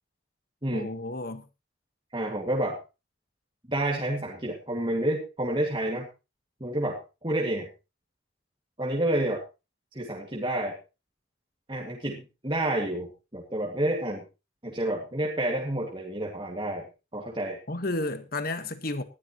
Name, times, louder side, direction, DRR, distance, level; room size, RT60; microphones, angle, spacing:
voice 1, 0.7-1.4 17.7-19.0, left 2 dB, 50° left, 1.4 m, -32 dB
voice 2, 2.1-2.8 3.7-6.1 6.6-7.7 8.8-9.4 9.9-10.8 11.7-14.2 14.6-16.9 17.1-17.6, right 1 dB, 25° right, 2.1 m, -29 dB
19.5 x 12.0 x 3.1 m
head